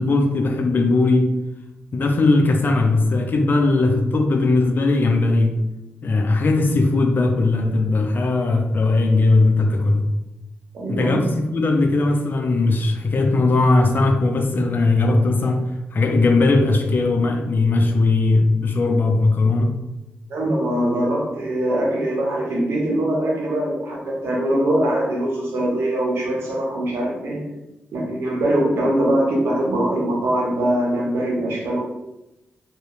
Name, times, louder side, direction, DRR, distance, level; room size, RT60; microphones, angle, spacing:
voice 1, 0.0-1.3 1.9-5.5 6.0-10.1 10.9-15.6 15.9-19.7, left 3 dB, 50° left, 4 dB, 0.4 m, -18 dB
voice 2, 10.7-11.2 20.3-27.4 27.9-31.8, right 1 dB, 75° right, -3 dB, 0.8 m, -22 dB
2.8 x 2.0 x 2.4 m, 0.95 s
supercardioid pair, 50°, 4 cm